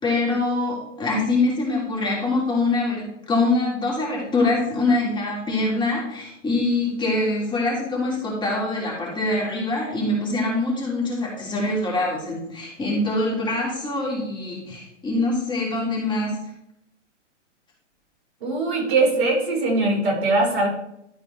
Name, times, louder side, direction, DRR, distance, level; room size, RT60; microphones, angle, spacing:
voice 1, 0.0-16.4, left 2 dB, 10° left, -4 dB, 2.9 m, -24 dB
voice 2, 18.4-20.7, right 2 dB, 55° right, -1 dB, 3.7 m, -21 dB
12.5 x 4.3 x 4.5 m, 0.78 s
hypercardioid pair, 125°, 37 cm